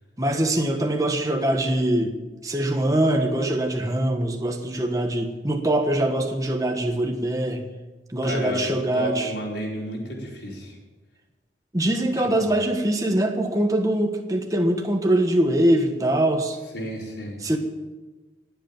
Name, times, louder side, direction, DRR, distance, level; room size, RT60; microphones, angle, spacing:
voice 1, 0.2-2.1 2.4-7.6 8.1-9.3 11.7-16.6 17.4-17.6, right 1 dB, 20° right, 4 dB, 1.3 m, -23 dB
voice 2, 8.2-10.7 12.4-12.5 16.7-17.4, equal, 80° left, -2 dB, 4.8 m, -31 dB
19.5 x 8.2 x 7.3 m, 1.2 s
head